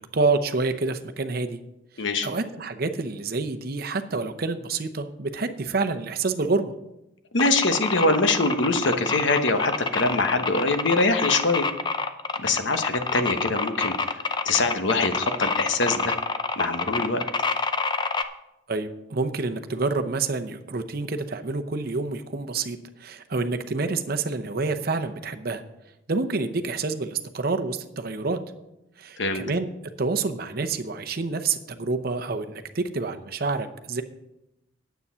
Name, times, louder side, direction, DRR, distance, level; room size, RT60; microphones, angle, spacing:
voice 1, 0.0-1.6 2.0-6.7 18.7-25.6 26.1-28.4 29.0-29.7 30.0-34.0, right 3 dB, 50° right, 7 dB, 0.7 m, -28 dB
voice 2, 7.3-11.7 12.4-14.2 14.4-16.1 16.6-17.2 29.2-29.4, left 3 dB, 70° left, 7 dB, 1.1 m, -23 dB
sound 1, 7.4-18.2, left 4 dB, 25° left, 0.5 m, -27 dB
9.8 x 8.1 x 5.6 m, 0.90 s
head